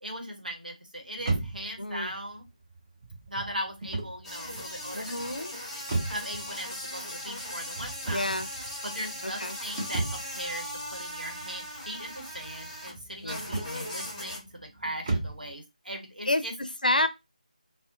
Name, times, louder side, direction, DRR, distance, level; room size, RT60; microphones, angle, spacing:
voice 1, 0.0-2.4 3.3-5.4 6.1-8.5 8.8-14.4 14.7-16.5, equal, 85° right, 1.0 m, -39 dB
sound 1, 1.2-15.5, right 3 dB, 25° right, 0.5 m, -37 dB
voice 2, 1.8-2.1 4.9-5.5 8.1-8.5 9.2-9.6 13.2-13.9 16.3-17.1, left 2 dB, 85° left, 0.4 m, -29 dB
sound 2, 4.2-13.0 13.3-14.4, left 1 dB, 10° left, 0.8 m, -39 dB
2.7 x 2.0 x 2.5 m
figure-of-eight pair, 160°, 5 cm